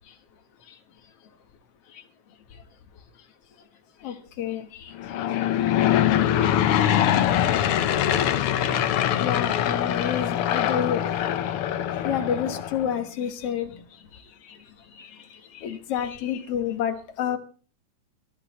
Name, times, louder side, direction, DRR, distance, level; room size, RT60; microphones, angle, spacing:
voice 1, 4.0-4.9 5.9-6.1 6.9-7.1 9.2-11.0 12.0-13.8 14.5-14.6 15.0-17.4, left 9 dB, 55° left, 7 dB, 2.0 m, -29 dB
Aircraft / Engine, 4.9-12.9, left 10 dB, 85° left, 1.2 m, -23 dB
22.0 x 11.5 x 3.0 m, 0.37 s
omnidirectional pair, 3.7 m